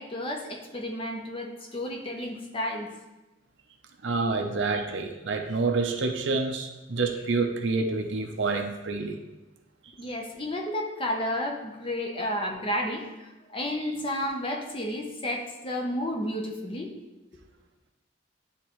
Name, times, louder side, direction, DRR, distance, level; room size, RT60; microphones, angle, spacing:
voice 1, 0.0-2.9 10.0-16.9, left 1 dB, 25° left, 1 dB, 0.7 m, -32 dB
voice 2, 4.0-9.2 12.2-12.3, right 3 dB, 65° right, 4 dB, 0.6 m, -28 dB
10.0 x 3.7 x 3.1 m, 1.1 s
head